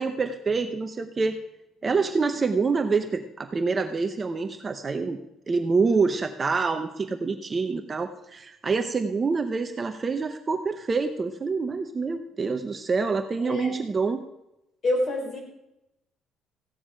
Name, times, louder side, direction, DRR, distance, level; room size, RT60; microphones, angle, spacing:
voice 1, 0.0-1.4 1.8-5.2 5.5-14.2, right 4 dB, 25° right, 7 dB, 0.8 m, -26 dB
voice 2, 13.4-13.7 14.8-15.4, left 1 dB, 35° left, 1 dB, 4.0 m, -26 dB
15.5 x 9.8 x 5.0 m, 0.89 s
cardioid pair, 150°, 0 cm